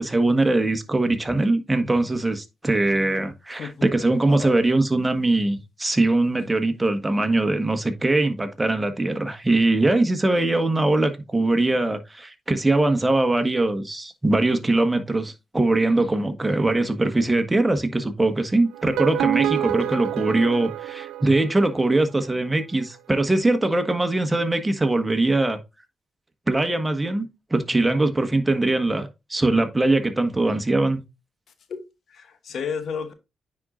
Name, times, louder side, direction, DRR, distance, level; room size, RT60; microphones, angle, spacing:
voice 1, 0.0-25.6 26.5-31.0, right 2 dB, 20° right, 1.5 m, -22 dB
voice 2, 3.6-3.9 4.3-4.6 31.7-31.8 32.1-33.1, left 6 dB, 70° left, 0.9 m, -32 dB
sound 1, 18.7-21.9, right 11 dB, 80° right, 0.3 m, -27 dB
9.5 x 4.3 x 2.6 m
supercardioid pair, 45°, 0 cm